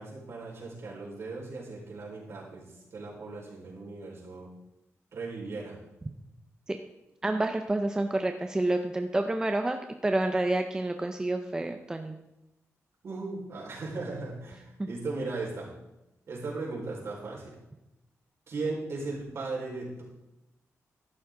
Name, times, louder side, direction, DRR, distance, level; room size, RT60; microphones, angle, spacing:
voice 1, 0.0-4.5 5.1-5.8 13.0-15.7 16.3-17.5 18.5-20.0, right 3 dB, 55° right, -3 dB, 4.7 m, -37 dB
voice 2, 7.2-12.2 14.8-14.9, right 2 dB, 15° right, 6 dB, 0.6 m, -29 dB
14.0 x 11.5 x 3.8 m, 0.94 s
wide cardioid pair, 180°, 5 cm